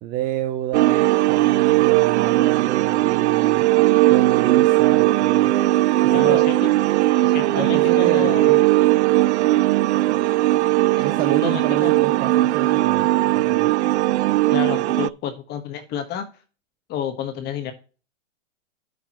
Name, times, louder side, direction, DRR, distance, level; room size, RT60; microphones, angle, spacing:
voice 1, 0.0-3.6 4.0-5.5 6.0-6.4 7.5-8.6 11.0-13.1 13.3-13.7, right 12 dB, 25° right, 0.7 m, -29 dB
sound 1, 0.7-15.1, right 17 dB, 60° right, 0.5 m, -18 dB
voice 2, 6.1-6.7 7.2-8.6 11.0-11.1 11.4-12.0 14.5-16.3 16.9-17.7, left 9 dB, 25° left, 1.3 m, -30 dB
11.5 x 6.3 x 3.0 m
hypercardioid pair, 140°, 38 cm